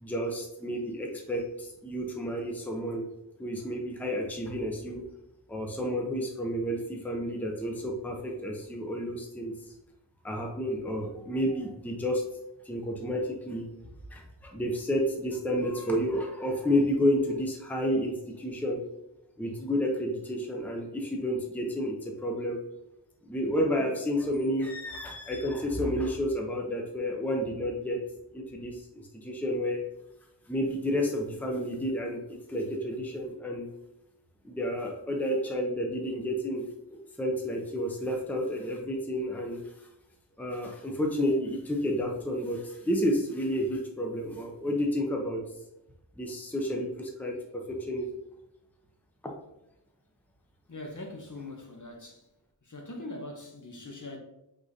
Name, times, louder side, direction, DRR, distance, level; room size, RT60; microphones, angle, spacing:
voice 1, 0.0-3.0 3.4-5.0 5.5-9.5 10.2-12.2 12.6-13.7 14.1-18.8 19.4-22.6 23.2-28.0 28.3-29.8 30.5-33.7 34.4-39.6 40.4-45.4 46.2-48.1, equal, 5° left, 0.7 m, -30 dB
voice 2, 50.7-52.2 52.7-54.2, left 2 dB, 45° left, 0.9 m, -41 dB
4.8 x 3.7 x 2.7 m
wide cardioid pair, 55°, 41 cm